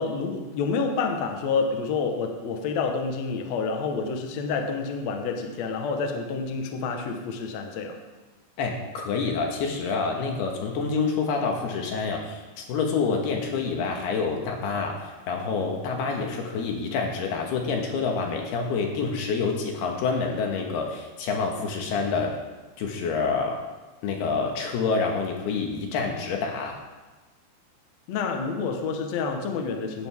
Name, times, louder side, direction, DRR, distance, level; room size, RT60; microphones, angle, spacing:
voice 1, 0.0-8.0 28.1-30.1, left 4 dB, 85° left, 3 dB, 1.5 m, -28 dB
voice 2, 8.6-22.4 22.8-23.6 24.0-26.8, left 4 dB, 65° left, 1 dB, 3.3 m, -27 dB
17.5 x 12.0 x 3.7 m, 1.2 s
omnidirectional pair, 5.3 m